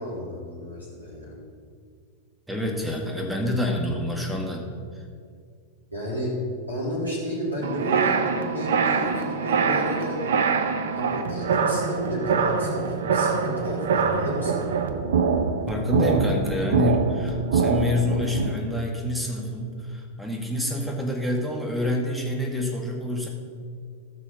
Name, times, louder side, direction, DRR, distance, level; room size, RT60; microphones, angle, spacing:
voice 1, 0.0-1.3 5.9-6.4 6.7-10.3 10.9-14.7, equal, 85° left, -8 dB, 3.2 m, -31 dB
voice 2, 2.5-4.7 4.9-5.0 15.7-23.3, left 1 dB, 5° right, 1 dB, 1.8 m, -27 dB
sound 1, 7.6-18.5, right 5 dB, 60° right, 0.8 m, -24 dB
14.0 x 6.2 x 5.4 m, 2.1 s
figure-of-eight pair, 90°, 0 cm